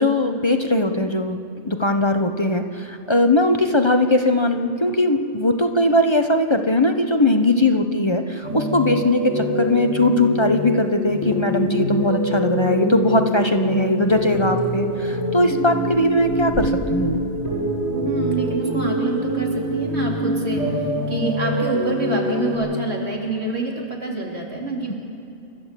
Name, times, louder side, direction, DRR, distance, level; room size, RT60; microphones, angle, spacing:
voice 1, 0.0-1.4 1.6-17.2, left 1 dB, 25° left, 6 dB, 0.8 m, -20 dB
sound 1, 8.4-22.6, equal, 55° left, 7.3 m, -25 dB
sound 2, 14.1-15.2 15.8-17.2, equal, 85° right, 3.0 m, -36 dB
voice 2, 17.9-24.9, right 2 dB, 50° right, -1 dB, 3.5 m, -26 dB
29.0 x 13.0 x 7.5 m, 2.7 s
omnidirectional pair, 1.4 m